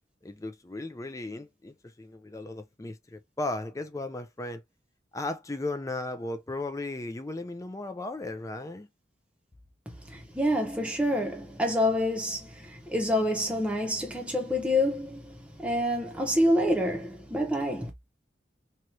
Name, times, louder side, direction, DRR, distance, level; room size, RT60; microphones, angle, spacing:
voice 1, 0.2-4.6 5.1-8.9, left 2 dB, 20° left, 0.4 m, -36 dB
voice 2, 10.1-17.9, left 1 dB, 5° right, 0.8 m, -27 dB
2.8 x 2.4 x 2.9 m
head